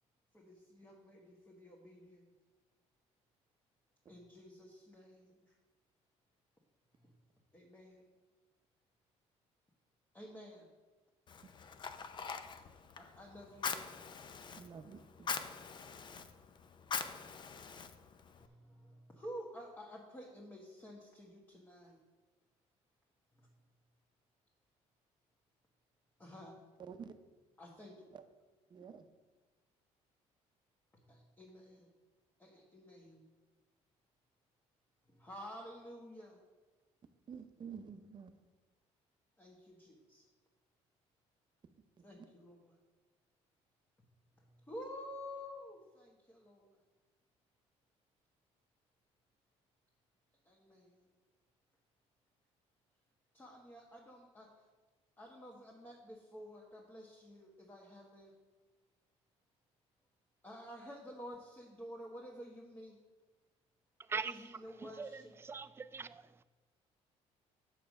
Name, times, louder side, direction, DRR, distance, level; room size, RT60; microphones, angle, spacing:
voice 1, 0.3-2.3 4.1-5.4 7.5-8.0 10.1-10.7 13.0-13.9 18.3-22.0 26.2-26.6 27.6-28.0 31.1-31.9 32.4-33.2 35.1-36.4 39.4-40.2 42.0-42.7 44.7-46.7 50.4-51.1 53.3-54.5 55.2-58.3 60.4-63.0 64.1-65.4, equal, 15° left, -2 dB, 1.4 m, -51 dB
Fire, 11.3-18.5, left 5 dB, 40° left, 0.6 m, -43 dB
voice 2, 14.6-15.4 26.8-27.1 28.1-28.2 28.7-29.1 37.3-38.3, right 6 dB, 35° right, 9 dB, 0.7 m, -49 dB
voice 3, 64.1-66.2, right 5 dB, 20° right, 12 dB, 0.3 m, -42 dB
6.8 x 6.3 x 5.3 m, 1.3 s
cardioid pair, 100°, 12 cm